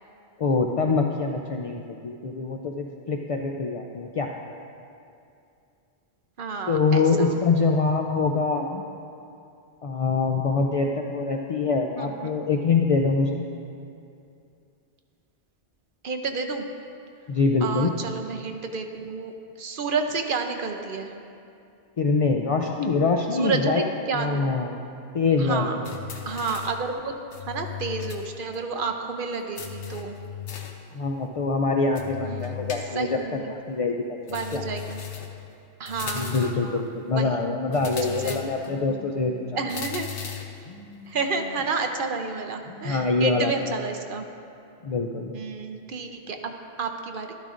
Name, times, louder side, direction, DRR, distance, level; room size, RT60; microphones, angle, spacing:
voice 1, 0.4-4.3 6.7-8.8 9.8-13.5 17.3-17.9 22.0-23.8 24.1-24.8 25.1-25.7 30.9-33.2 33.5-34.0 34.5-34.6 36.1-39.6 42.8-43.5 44.8-45.3, left 4 dB, 65° left, 2 dB, 0.3 m, -24 dB
voice 2, 6.4-7.4 12.0-12.3 16.0-16.7 17.6-19.3 19.6-21.1 23.3-24.6 25.4-25.8 26.3-27.1 27.5-30.1 32.2-33.5 34.3-35.0 35.8-36.8 37.1-38.4 39.5-40.1 41.1-44.2 45.3-47.3, right 4 dB, 55° right, 4 dB, 0.8 m, -30 dB
sound 1, 25.8-26.8 27.3-28.3 28.5-28.6 29.6-30.8 32.0-33.2 34.3-35.4 35.9-36.7 37.7-38.8 39.7-40.6, left 9 dB, 85° left, 1.1 m, -36 dB
Telephone, 38.6-39.7 40.6-41.7 42.6-43.6, left 1 dB, 45° left, 1.2 m, -44 dB
12.5 x 12.0 x 2.5 m, 2.5 s
omnidirectional pair, 1.1 m